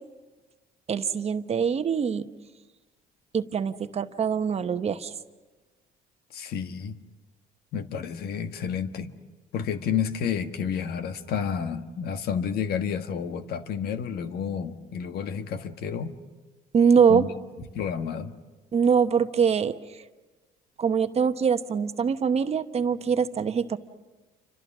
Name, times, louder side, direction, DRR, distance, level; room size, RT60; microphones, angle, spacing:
voice 1, 0.9-2.2 3.3-5.1 16.7-17.2 18.7-19.7 20.8-23.8, right 6 dB, 40° right, 10 dB, 1.0 m, -23 dB
voice 2, 6.3-6.9 7.7-9.1 9.5-16.1 17.1-17.3 17.7-18.3, left 7 dB, 70° left, 8 dB, 1.5 m, -30 dB
29.0 x 26.0 x 6.1 m, 1.2 s
cardioid pair, 110°, 17 cm